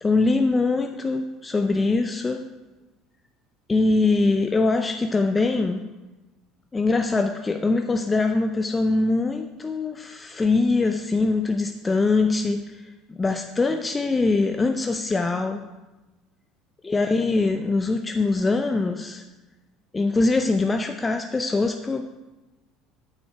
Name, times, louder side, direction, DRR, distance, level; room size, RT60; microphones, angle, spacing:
voice 1, 0.0-2.5 3.7-5.8 6.7-12.8 13.1-15.7 16.8-19.2 19.9-22.2, left 3 dB, 20° left, 6 dB, 0.5 m, -23 dB
8.4 x 6.4 x 4.5 m, 1.1 s
hypercardioid pair, 80°, 0 cm